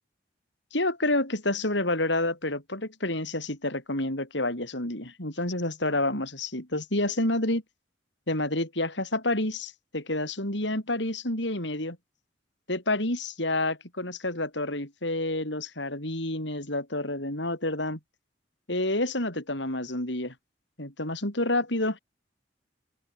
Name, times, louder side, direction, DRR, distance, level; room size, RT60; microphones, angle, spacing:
voice 1, 0.7-7.6 8.3-12.0 12.7-18.0 18.7-20.3 20.8-22.0, left 2 dB, 65° left, 7.4 m, -29 dB
open air
head